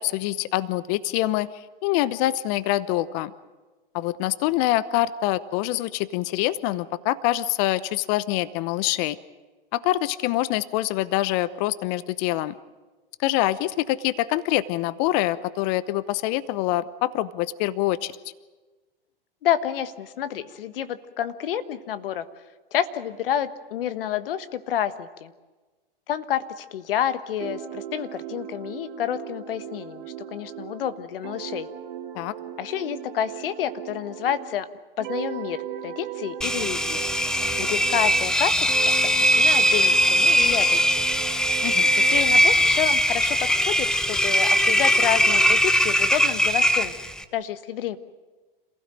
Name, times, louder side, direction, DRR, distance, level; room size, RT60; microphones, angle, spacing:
voice 1, 0.0-3.3 3.9-9.2 9.7-12.5 13.2-18.1 32.1-32.3 41.6-41.9, left 15 dB, 45° left, 17 dB, 0.9 m, -25 dB
voice 2, 19.4-22.3 22.7-25.3 26.1-31.7 32.6-34.7 35.0-37.0 37.3-41.0 42.1-46.9 47.3-48.0, left 10 dB, 70° left, 12 dB, 1.4 m, -29 dB
sound 1, 27.4-34.6 35.0-38.4 38.7-42.3, right 10 dB, 60° right, 2.4 m, -37 dB
Engine, 36.4-47.2, equal, ahead, 1.1 m, -20 dB
27.5 x 16.0 x 9.1 m, 1.3 s
hypercardioid pair, 110°, 29 cm